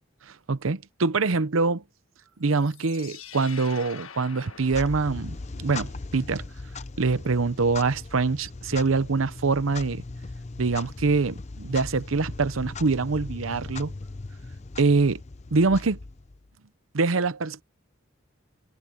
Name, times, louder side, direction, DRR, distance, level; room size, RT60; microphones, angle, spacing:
voice 1, 0.5-1.8 2.4-6.4 7.0-10.0 10.6-13.9 14.8-15.2 15.5-16.0 16.9-17.6, right 4 dB, 80° right, 0.8 m, -24 dB
sound 1, 2.5-5.6, left 8 dB, 90° left, 1.5 m, -45 dB
Clock, 4.5-16.5, left 3 dB, 35° left, 0.6 m, -39 dB
head